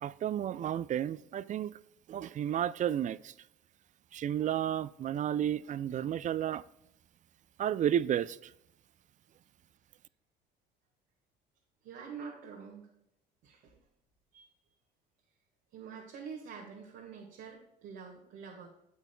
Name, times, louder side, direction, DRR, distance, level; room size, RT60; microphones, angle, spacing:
voice 1, 0.0-1.7 2.1-3.3 4.1-6.6 7.6-8.5, right 10 dB, 35° right, 0.4 m, -32 dB
voice 2, 11.8-12.9 13.4-13.8 14.3-14.5 15.7-18.7, right 6 dB, 60° right, 1.5 m, -46 dB
9.3 x 8.0 x 2.2 m
hypercardioid pair, 65°, 21 cm